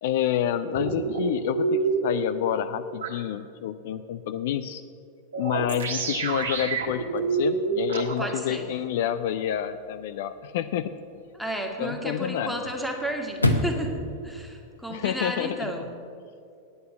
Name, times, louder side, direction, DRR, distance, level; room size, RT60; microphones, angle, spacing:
voice 1, 0.0-4.8 5.4-10.9 11.8-12.7 14.9-15.7, left 10 dB, 55° left, 11 dB, 0.4 m, -28 dB
sound 1, 0.7-2.2 3.0-3.1 5.3-8.3, right 4 dB, 70° right, 1.6 m, -27 dB
Chirp tweet / Car / Slam, 5.6-15.6, left 1 dB, 85° left, 0.9 m, -35 dB
voice 2, 8.2-8.7 11.4-15.9, right 1 dB, ahead, 2 dB, 1.6 m, -32 dB
9.3 x 8.7 x 8.0 m, 2.5 s
figure-of-eight pair, 90°, 0 cm